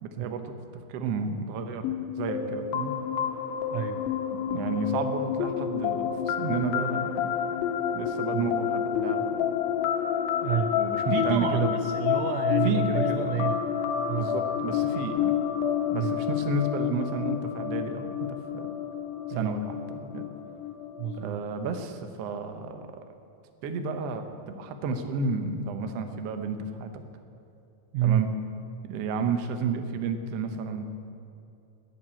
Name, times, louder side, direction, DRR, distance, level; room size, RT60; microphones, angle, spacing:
voice 1, 0.0-0.5 0.9-1.9 2.2-2.9 4.5-7.2 7.9-9.5 10.7-11.8 12.6-13.5 14.1-15.3 15.9-18.7 19.3-20.3 21.1-22.8 23.6-27.0 28.0-28.3 28.8-30.8, right 4 dB, 70° right, 7 dB, 1.5 m, -32 dB
sound 1, 1.8-21.4, left 8 dB, 90° left, 2.7 m, -29 dB
voice 2, 3.7-4.0 8.3-8.5 10.4-10.8 11.1-13.7 14.1-14.4 15.9-16.2 19.3-19.6 21.0-21.4 27.9-28.3, right 10 dB, 85° right, 8 dB, 1.7 m, -29 dB
20.0 x 7.6 x 8.8 m, 2.7 s
omnidirectional pair, 4.1 m